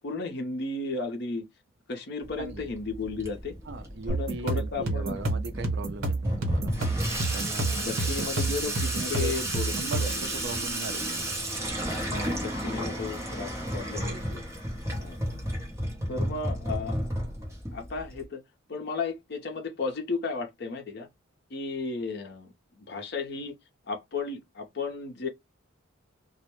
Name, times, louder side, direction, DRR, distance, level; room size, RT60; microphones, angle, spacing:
voice 1, 0.0-1.4 1.9-3.5 4.1-5.2 7.8-10.3 12.1-14.4 15.0-15.2 16.1-17.0 17.7-18.4 18.7-21.1 21.5-23.5 23.9-25.3, left 4 dB, 50° left, 0.5 m, -34 dB
Water tap faucet / Sink (filling or washing), 2.2-18.2, right 1 dB, 15° right, 0.7 m, -33 dB
voice 2, 2.4-2.7 3.7-6.8 7.3-7.9 8.2-8.3 8.9-11.3, right 3 dB, 55° right, 0.4 m, -39 dB
sound 1, 4.1-10.3, right 2 dB, 80° right, 1.0 m, -29 dB
2.1 x 2.0 x 2.9 m
head